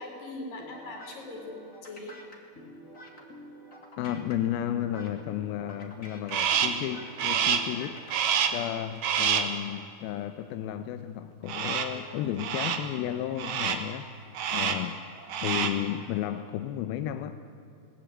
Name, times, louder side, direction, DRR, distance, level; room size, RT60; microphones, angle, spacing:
voice 1, 0.0-2.2 14.7-14.9, left 2 dB, 55° left, 1 dB, 5.6 m, -41 dB
sound 1, 0.6-8.4, left 1 dB, 20° left, 2.5 m, -48 dB
voice 2, 4.0-8.0 8.5-14.1 14.5-17.4, left 11 dB, 75° left, 10 dB, 2.4 m, -33 dB
Crow, 6.3-6.9 7.2-7.8 8.1-8.7 9.0-9.6 11.5-12.0 12.4-12.9 13.4-13.9 14.3-14.9 15.2-15.9, right 7 dB, 60° right, 2.2 m, -28 dB
20.0 x 19.0 x 9.1 m, 2.8 s
omnidirectional pair, 4.8 m